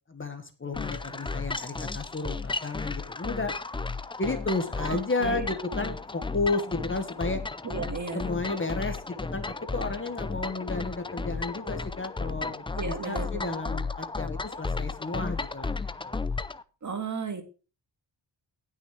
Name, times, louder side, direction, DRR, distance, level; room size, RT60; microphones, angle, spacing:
voice 1, 0.1-3.5 4.2-7.4 8.1-16.2, left 3 dB, 30° left, 7 dB, 1.5 m, -32 dB
sound 1, 0.7-16.6, left 3 dB, 10° left, 0.4 m, -34 dB
voice 2, 4.8-5.8 7.6-8.2 12.8-13.6 16.8-17.4, right 4 dB, 45° right, 6 dB, 2.0 m, -35 dB
18.5 x 6.4 x 3.3 m, 0.33 s
wide cardioid pair, 125°, 43 cm